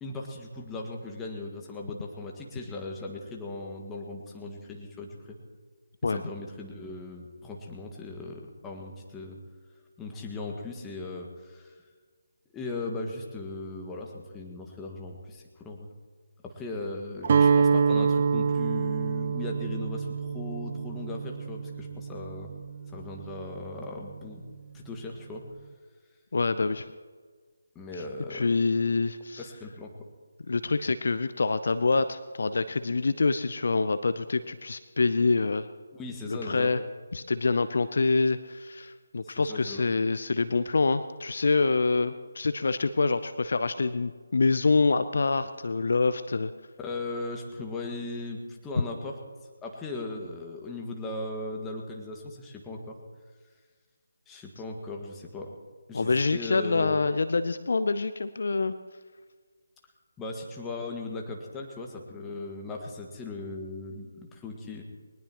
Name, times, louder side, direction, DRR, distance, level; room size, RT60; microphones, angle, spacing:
voice 1, 0.0-5.4 6.0-9.4 10.0-11.7 12.5-15.9 16.4-22.5 22.9-24.4 24.7-25.4 27.8-28.5 29.4-29.9 35.9-36.7 39.2-39.9 46.8-49.1 49.6-53.0 54.3-55.5 55.9-57.0 60.2-64.8, left 2 dB, 10° left, 0 dB, 1.8 m, -38 dB
Guitar, 17.2-23.3, right 5 dB, 40° right, 0.7 m, -26 dB
voice 2, 26.3-26.9 28.3-29.5 30.5-35.7 36.3-36.8 37.1-46.5 55.9-58.7, left 3 dB, 55° left, 12 dB, 0.6 m, -26 dB
21.5 x 19.5 x 3.1 m, 1.5 s
figure-of-eight pair, 150°, 0 cm